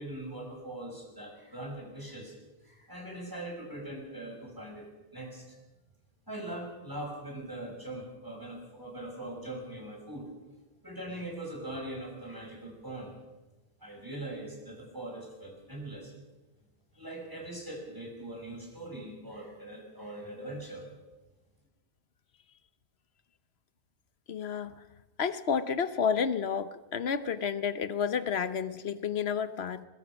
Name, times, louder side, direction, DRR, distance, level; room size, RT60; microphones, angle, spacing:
voice 1, 0.0-2.3 2.6-4.9 5.1-5.6 6.3-10.3 10.8-13.1 13.8-16.1 17.0-20.8, right 1 dB, 20° right, 0 dB, 5.6 m, -41 dB
voice 2, 24.3-24.7 25.2-29.9, left 6 dB, 80° left, 13 dB, 1.2 m, -30 dB
21.0 x 21.0 x 6.1 m, 1.1 s
omnidirectional pair, 1.1 m